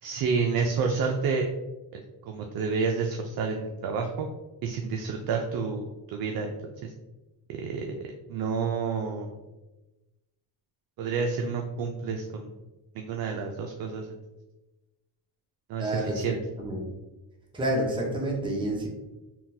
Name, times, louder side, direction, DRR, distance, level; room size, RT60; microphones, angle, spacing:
voice 1, 0.0-1.5 1.9-4.3 4.6-6.5 6.8-6.9 7.5-9.4 11.0-12.5 12.9-14.2 15.7-16.4, right 5 dB, 55° right, 3 dB, 0.5 m, -29 dB
voice 2, 15.8-16.8 17.5-18.9, right 1 dB, 10° right, -2 dB, 0.8 m, -29 dB
3.6 x 2.3 x 2.7 m, 1.1 s
cardioid pair, 85°, 44 cm